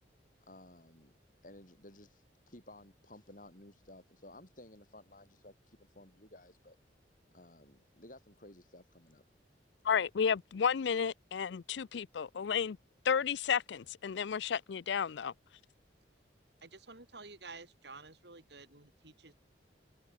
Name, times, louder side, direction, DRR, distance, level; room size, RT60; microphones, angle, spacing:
voice 1, 0.5-1.1 1.4-6.8 7.3-9.2, left 1 dB, 45° left, 7.4 m, -56 dB
voice 2, 9.8-12.8 13.0-15.3, left 7 dB, 70° left, 0.4 m, -32 dB
voice 3, 16.6-19.3, right 3 dB, 65° right, 3.7 m, -51 dB
head